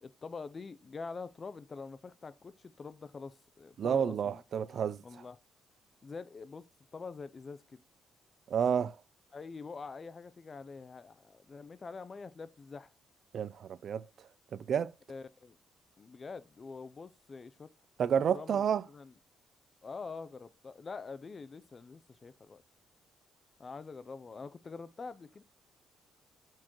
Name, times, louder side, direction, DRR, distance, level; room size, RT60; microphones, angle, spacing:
voice 1, 0.0-4.4 5.0-5.4 6.0-6.7 6.9-7.8 9.3-12.9 15.1-15.6 16.0-17.7 18.3-19.1 19.8-22.6 23.6-25.4, left 4 dB, 35° left, 0.6 m, -45 dB
voice 2, 3.8-5.2 8.5-9.0 13.3-14.9 18.0-18.8, right 7 dB, 60° right, 0.4 m, -31 dB
13.5 x 4.6 x 3.0 m
cardioid pair, 90°, 0 cm